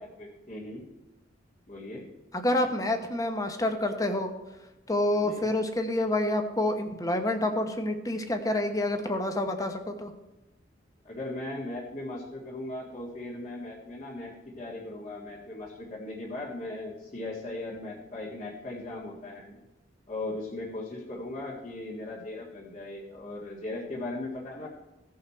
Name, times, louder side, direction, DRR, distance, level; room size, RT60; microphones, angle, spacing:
voice 1, 0.2-0.8 1.7-2.1 5.1-5.5 11.0-19.6 20.1-24.7, left 2 dB, 40° left, -7 dB, 1.8 m, -38 dB
voice 2, 2.3-4.3 4.9-10.1, left 1 dB, 20° left, 6 dB, 1.0 m, -28 dB
16.0 x 5.7 x 4.4 m, 1.0 s
head